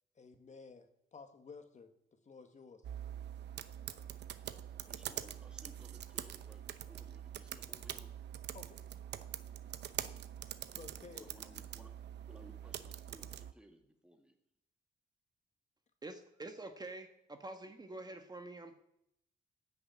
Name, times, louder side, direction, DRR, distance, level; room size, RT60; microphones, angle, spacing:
voice 1, 0.1-2.8 8.5-8.9 10.7-11.3, left 4 dB, 45° left, 7 dB, 1.6 m, -54 dB
sound 1, 2.8-13.5, right 10 dB, 85° right, 0.8 m, -45 dB
voice 2, 4.8-8.2 10.9-12.0 12.3-14.4, right 1 dB, 5° right, 5 dB, 2.1 m, -60 dB
voice 3, 16.0-18.8, right 2 dB, 25° right, 7 dB, 1.2 m, -47 dB
16.0 x 6.6 x 8.8 m, 0.78 s
cardioid pair, 110°, 17 cm